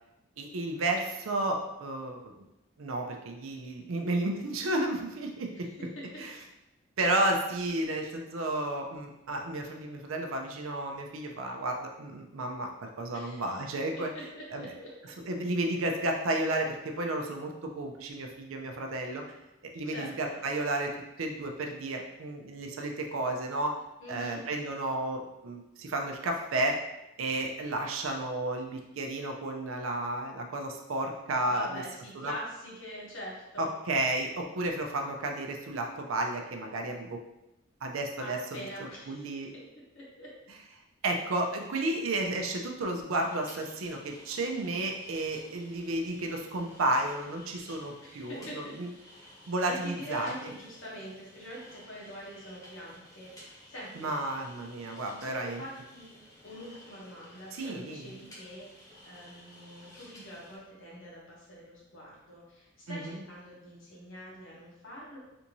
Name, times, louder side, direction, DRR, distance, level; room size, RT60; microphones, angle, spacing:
voice 1, 0.4-2.5 2.8-5.7 6.2-6.4 7.0-14.1 14.5-14.7 15.2-19.2 19.6-20.9 21.2-23.8 24.1-26.8 27.2-31.8 32.2-32.3 33.6-37.2 37.8-38.7 39.1-39.5 41.0-48.9 49.5-50.5 53.9-55.6 57.5-58.2 62.9-63.2, right 2 dB, 75° right, 3 dB, 0.5 m, -32 dB
voice 2, 5.5-6.0 13.1-13.5 14.1-14.9 19.9-20.4 24.0-24.4 31.5-33.7 38.2-39.6 39.9-40.3 48.0-49.2 49.7-54.1 55.1-56.1 56.4-65.2, equal, 70° left, -5 dB, 1.2 m, -44 dB
sound 1, 43.2-60.6, left 1 dB, 15° left, 0.8 m, -54 dB
3.4 x 2.6 x 2.9 m, 0.91 s
head